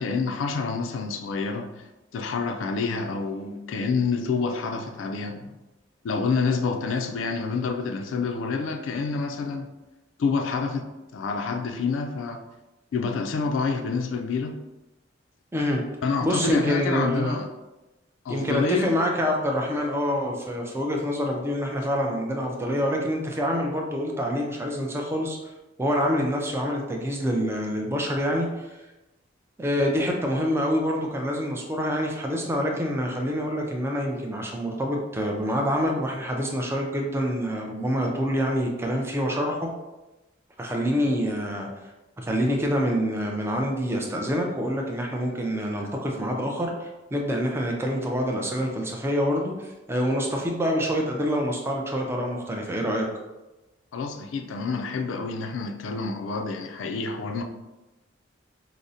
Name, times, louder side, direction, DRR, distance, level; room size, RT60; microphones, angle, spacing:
voice 1, 0.0-1.7 2.1-5.5 6.0-9.7 10.2-12.4 12.9-14.6 16.0-17.5 18.3-18.9 53.9-57.4, left 4 dB, 75° left, 5 dB, 0.3 m, -28 dB
voice 2, 16.2-17.4 18.3-25.4 25.8-28.8 29.6-39.7 40.6-41.7 42.2-53.1, equal, 15° right, 0 dB, 0.4 m, -26 dB
4.8 x 2.0 x 2.7 m, 1.1 s
head